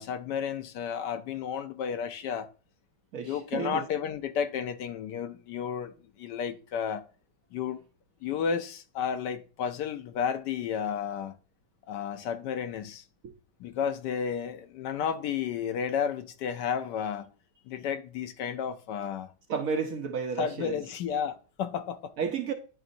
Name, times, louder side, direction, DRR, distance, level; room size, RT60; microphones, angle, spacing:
voice 1, 0.0-2.5 3.2-7.0 7.5-7.8 8.2-11.3 11.9-13.0 13.6-17.3 17.7-19.3 20.4-22.1, left 7 dB, 75° left, 1.2 m, -32 dB
voice 2, 3.1-3.8 13.2-13.3 19.5-20.8 22.2-22.5, right 6 dB, 65° right, 0.9 m, -32 dB
10.5 x 3.9 x 2.6 m
omnidirectional pair, 1.9 m